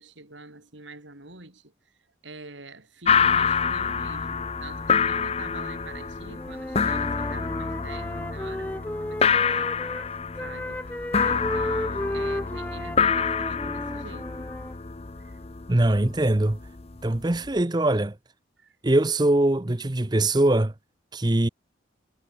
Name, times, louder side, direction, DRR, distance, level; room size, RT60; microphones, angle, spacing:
voice 1, 0.0-10.0 10.4-14.5 15.2-15.4 18.6-18.8, right 3 dB, 75° right, 4.4 m, -45 dB
sound 1, 3.1-17.6, left 6 dB, 30° left, 0.7 m, -27 dB
Wind instrument woodwind instrument, 6.4-10.1 10.4-14.7, left 1 dB, 10° left, 0.3 m, -34 dB
voice 2, 15.7-16.6 17.0-18.1 18.8-20.7 21.1-21.5, right 1 dB, 20° right, 0.7 m, -22 dB
head